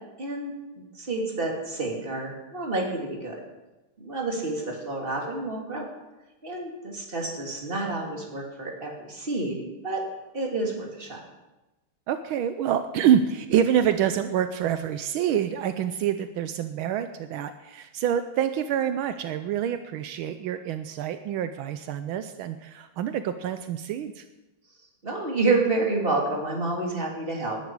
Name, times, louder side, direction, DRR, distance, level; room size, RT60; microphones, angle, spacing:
voice 1, 0.2-0.5 0.9-3.4 4.0-5.9 6.4-10.0 10.3-11.2 25.0-27.6, right 3 dB, 25° right, -1 dB, 3.0 m, -29 dB
voice 2, 12.1-24.2, right 9 dB, 80° right, 9 dB, 1.5 m, -26 dB
19.0 x 11.0 x 4.8 m, 1.1 s
omnidirectional pair, 2.3 m